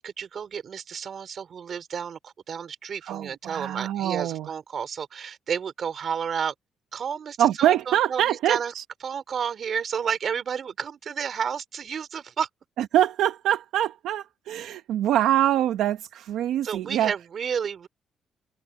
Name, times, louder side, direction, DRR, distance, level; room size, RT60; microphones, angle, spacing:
voice 1, 0.0-6.5 6.9-8.7 9.0-12.5 16.6-17.9, right 7 dB, 55° right, 4.2 m, -31 dB
voice 2, 3.0-4.5 7.4-8.8 12.9-17.1, right 12 dB, 85° right, 1.0 m, -24 dB
cardioid pair, 90°, 0 cm